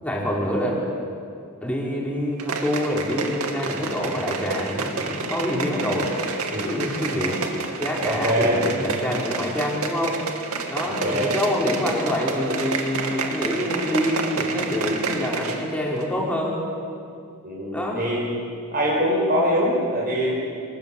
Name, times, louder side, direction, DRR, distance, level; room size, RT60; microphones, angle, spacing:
voice 1, 0.0-0.8 1.6-6.1 6.6-7.4 7.8-10.2 10.7-16.6 17.7-18.2, left 1 dB, 5° left, -3 dB, 4.9 m, -26 dB
sound 1, 2.4-15.7 16.0-16.1, right 4 dB, 85° right, 2.6 m, -29 dB
voice 2, 6.5-6.8 8.0-8.6 10.9-11.4 17.4-18.2 18.7-20.3, equal, 40° right, -5 dB, 5.2 m, -23 dB
26.5 x 21.0 x 8.8 m, 2.4 s
head